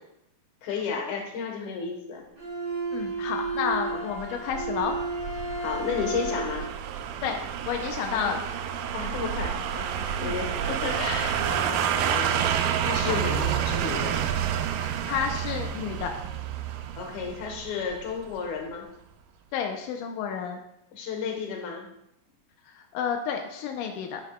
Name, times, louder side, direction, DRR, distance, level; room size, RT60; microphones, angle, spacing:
voice 1, 0.6-2.3 3.9-4.1 5.6-6.7 8.1-8.4 8.9-14.2 16.9-18.9 20.9-21.9, left 5 dB, 65° left, 2 dB, 2.4 m, -33 dB
Bowed string instrument, 2.4-6.7, right 3 dB, 35° right, 0.8 m, -32 dB
voice 2, 2.9-4.9 7.2-8.4 10.2-10.3 13.0-13.2 14.8-16.1 19.5-20.6 22.7-24.2, left 7 dB, 85° left, 4 dB, 1.8 m, -31 dB
sound 1, 3.5-18.4 18.7-18.8, right 9 dB, 85° right, 1.9 m, -29 dB
10.0 x 8.4 x 2.3 m, 0.80 s
omnidirectional pair, 4.4 m